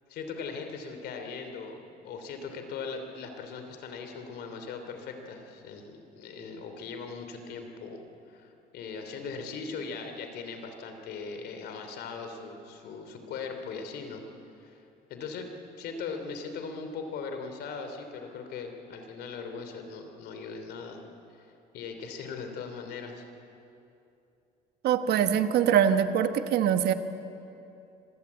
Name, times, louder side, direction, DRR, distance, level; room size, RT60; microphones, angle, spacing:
voice 1, 0.1-8.0 8.3-14.2 14.6-14.8 15.1-15.5 15.8-21.0 21.7-23.2, left 5 dB, 75° left, 6 dB, 3.1 m, -39 dB
voice 2, 24.8-26.9, right 9 dB, 70° right, 9 dB, 1.2 m, -23 dB
25.5 x 16.0 x 8.3 m, 2.7 s
cardioid pair, 110°, 17 cm